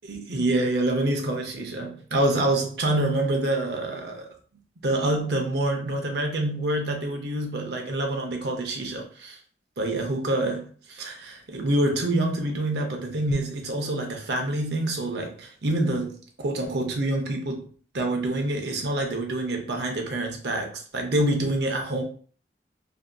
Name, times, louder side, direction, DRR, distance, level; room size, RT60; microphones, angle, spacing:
voice 1, 0.1-4.4 4.8-9.4 9.8-17.7 17.9-22.0, right 1 dB, 70° right, 0.6 m, -26 dB
2.6 x 2.4 x 2.2 m
head